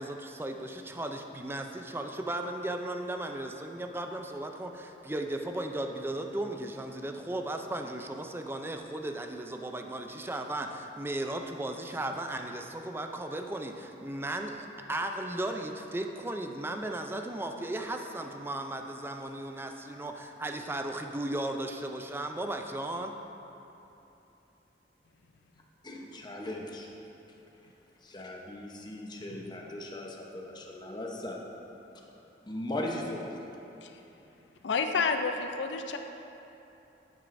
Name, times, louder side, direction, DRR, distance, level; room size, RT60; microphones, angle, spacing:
voice 1, 0.0-20.1 20.4-23.1, right 1 dB, 15° right, 4 dB, 0.4 m, -36 dB
voice 2, 25.8-26.9 28.0-31.4 32.4-33.4, left 1 dB, 25° left, -1 dB, 0.8 m, -38 dB
voice 3, 34.6-36.0, left 4 dB, 85° left, 5 dB, 0.5 m, -30 dB
10.0 x 9.0 x 2.6 m, 3.0 s
head